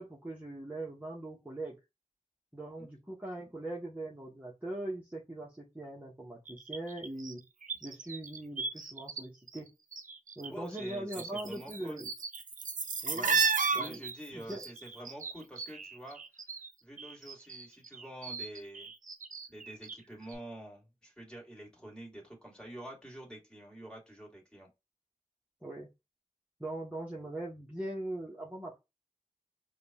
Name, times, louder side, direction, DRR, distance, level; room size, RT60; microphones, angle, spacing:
voice 1, 0.0-1.7 2.5-7.4 7.8-9.7 10.4-12.1 13.0-13.3 13.7-14.0 14.3-14.6 25.6-25.9 26.6-28.8, right 1 dB, 10° right, 1.2 m, -41 dB
sound 1, 6.5-9.2 9.5-10.5 10.7-16.7 17.0-20.0 20.3-20.4, right 5 dB, 75° right, 0.5 m, -35 dB
voice 2, 10.5-12.0 13.1-13.4 13.7-16.2 16.8-18.9 19.5-24.7, right 1 dB, 5° left, 2.3 m, -47 dB
4.9 x 2.4 x 2.9 m
cardioid pair, 40°, 14 cm